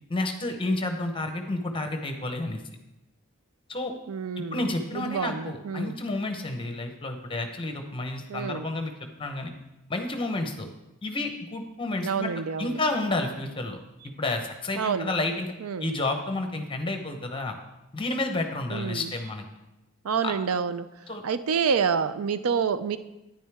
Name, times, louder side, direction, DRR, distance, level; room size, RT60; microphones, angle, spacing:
voice 1, 0.1-2.6 3.7-3.9 4.4-8.9 9.2-9.5 9.9-10.7 11.0-12.3 12.6-13.8 14.2-15.5 15.8-17.6 17.9-19.4 20.2-20.3 21.1-21.2, left 2 dB, 25° left, 5 dB, 0.9 m, -30 dB
voice 2, 4.1-5.9 8.3-8.7 12.0-12.8 14.8-15.1 15.6-15.9 18.7-19.1 20.0-20.9 21.2-23.0, right 6 dB, 75° right, 13 dB, 0.5 m, -28 dB
10.0 x 10.0 x 3.5 m, 0.95 s
head